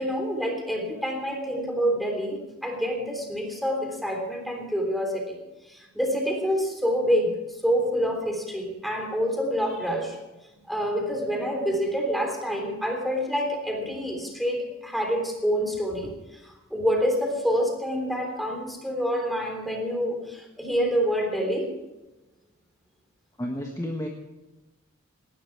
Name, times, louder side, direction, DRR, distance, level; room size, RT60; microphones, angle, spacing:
voice 1, 0.0-5.4 5.7-10.2 10.7-16.1 16.7-21.7, equal, ahead, 2 dB, 3.4 m, -27 dB
voice 2, 23.4-24.1, left 1 dB, 15° left, 1 dB, 1.4 m, -31 dB
18.0 x 12.5 x 4.8 m, 1.0 s
head